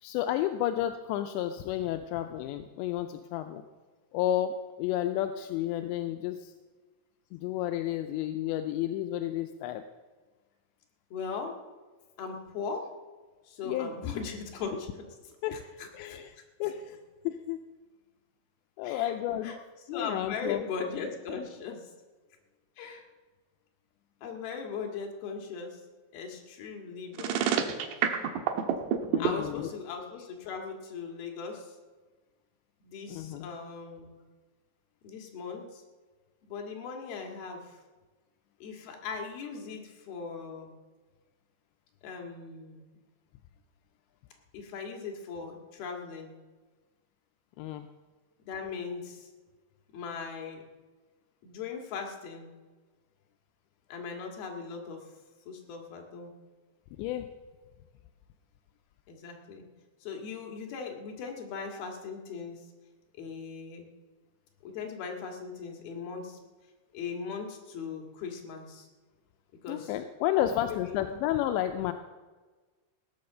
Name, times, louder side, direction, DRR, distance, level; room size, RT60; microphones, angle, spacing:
voice 1, 0.0-3.6 4.1-6.5 7.3-9.8 13.6-13.9 15.4-16.3 16.6-17.6 18.8-19.6 19.9-20.6 29.1-29.7 33.1-33.5 47.6-47.9 57.0-57.3 69.7-71.9, left 12 dB, 85° left, 8 dB, 2.8 m, -31 dB
voice 2, 11.1-11.6 12.2-12.9 13.5-16.2 18.8-19.1 19.4-19.6 19.9-21.9 22.8-23.1 24.2-25.8 26.1-27.7 29.2-31.8 32.8-34.2 35.0-35.8 36.5-37.8 38.6-40.7 42.0-42.9 44.5-46.3 48.5-49.3 49.9-50.6 51.4-52.5 53.9-55.1 55.5-56.4 59.1-59.7 60.0-62.7 63.2-63.9 64.6-66.4 66.9-68.9 69.6-69.9 70.3-71.0, left 5 dB, 60° left, 2 dB, 3.5 m, -39 dB
sound 1, 27.1-29.3, right 9 dB, 75° right, 3.2 m, -27 dB
17.0 x 9.6 x 6.7 m, 1.3 s
omnidirectional pair, 5.2 m